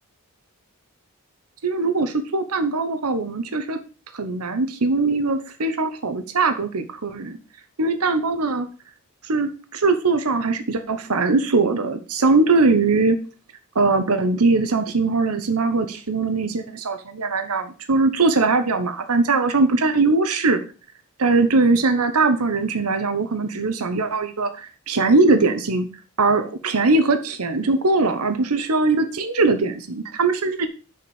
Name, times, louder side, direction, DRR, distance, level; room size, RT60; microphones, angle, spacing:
voice 1, 1.6-3.8 4.1-7.4 7.8-8.7 9.2-13.2 13.7-20.6 21.2-25.9 26.2-30.7, right 3 dB, 85° right, 9 dB, 1.0 m, -21 dB
6.7 x 5.2 x 7.0 m, 0.36 s
head